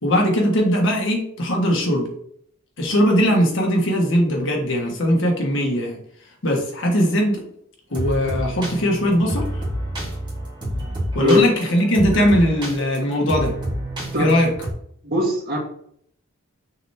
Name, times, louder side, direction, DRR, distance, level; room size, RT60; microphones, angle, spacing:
voice 1, 0.0-2.1 2.8-6.0 6.4-7.4 7.9-9.5 11.1-13.5 14.2-14.5, equal, 60° left, 1 dB, 1.4 m, -19 dB
sound 1, 7.9-14.7, equal, 20° right, 1.8 m, -28 dB
voice 2, 15.0-15.6, left 2 dB, 45° right, -1 dB, 1.8 m, -19 dB
6.4 x 3.4 x 4.4 m, 0.67 s
head